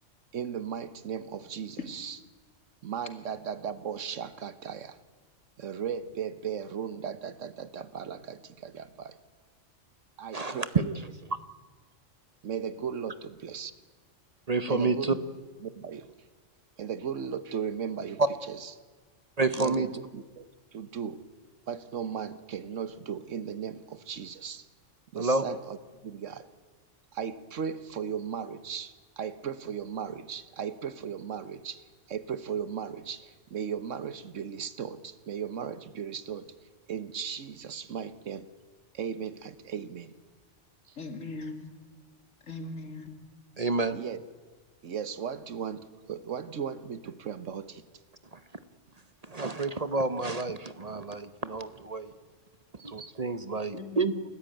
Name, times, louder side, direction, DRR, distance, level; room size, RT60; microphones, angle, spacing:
voice 1, 0.3-2.2 2.8-5.0 5.6-9.2 10.2-11.0 12.4-13.7 14.7-15.1 15.6-16.1 16.8-18.2 18.5-18.7 19.5-20.5 20.7-21.2 21.7-24.6 25.1-25.8 26.0-26.5 27.1-36.5 36.9-38.5 38.9-40.1 40.9-41.0 43.9-44.2 44.8-47.8 52.8-52.9, right 7 dB, 75° right, 13 dB, 1.4 m, -36 dB
voice 2, 10.3-10.8 14.5-15.2 18.2-18.3 19.4-19.9 25.2-25.4 43.6-44.0 48.3-48.4 49.2-52.1 52.8-54.2, right 3 dB, 35° right, 12 dB, 0.9 m, -28 dB
voice 3, 41.0-41.7 42.5-43.2 53.7-54.2, left 3 dB, 85° left, 6 dB, 2.6 m, -39 dB
30.0 x 14.0 x 9.1 m, 1.4 s
omnidirectional pair, 1.3 m